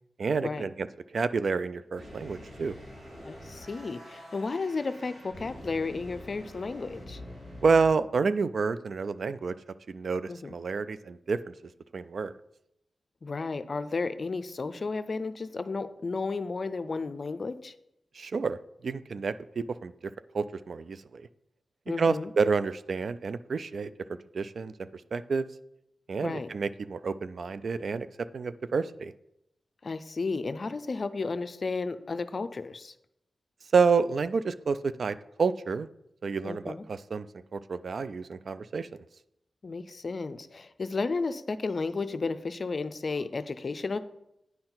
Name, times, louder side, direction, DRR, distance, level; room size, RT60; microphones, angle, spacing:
voice 1, 0.2-0.9 1.1-2.7 7.6-9.5 9.9-11.4 11.9-12.3 18.1-19.9 20.3-21.2 22.0-23.9 24.3-25.5 26.1-28.1 28.3-29.1 33.7-35.9 36.2-37.3 37.5-38.9, right 5 dB, 70° right, 14 dB, 0.3 m, -29 dB
sound 1, 1.9-7.9, left 1 dB, 85° right, 2.5 m, -45 dB
voice 2, 3.2-7.2 10.3-10.6 13.2-17.7 21.9-22.3 26.2-26.5 29.8-32.9 36.4-36.8 39.6-44.0, left 4 dB, 50° left, 12 dB, 0.4 m, -33 dB
9.4 x 4.4 x 3.9 m, 0.83 s
cardioid pair, 70°, 0 cm